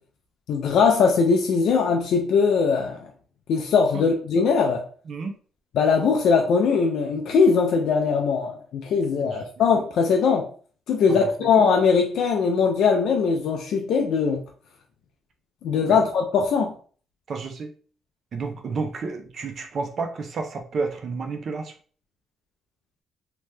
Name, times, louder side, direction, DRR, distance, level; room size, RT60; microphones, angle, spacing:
voice 1, 0.5-3.1 3.5-4.8 5.7-10.5 10.9-14.4 15.6-16.7, left 5 dB, 70° left, 2 dB, 0.4 m, -20 dB
voice 2, 11.1-11.5 15.9-16.0 17.3-17.7 18.3-21.7, right 4 dB, 50° right, 5 dB, 0.6 m, -31 dB
2.9 x 2.2 x 3.2 m, 0.43 s
cardioid pair, 85°, 0 cm